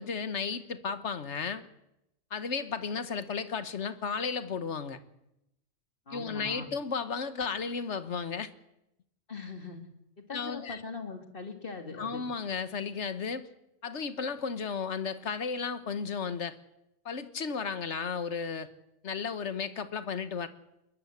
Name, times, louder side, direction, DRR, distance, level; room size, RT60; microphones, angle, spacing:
voice 1, 0.0-1.7 2.3-5.0 6.1-8.5 10.3-10.8 12.0-13.5 13.8-16.5 17.0-18.7 19.0-20.5, left 5 dB, 75° left, 12 dB, 1.6 m, -34 dB
voice 2, 6.1-6.7 9.3-9.8 10.2-12.2, left 4 dB, 50° left, 5 dB, 2.7 m, -41 dB
21.5 x 21.0 x 8.2 m, 0.86 s
omnidirectional pair, 1.2 m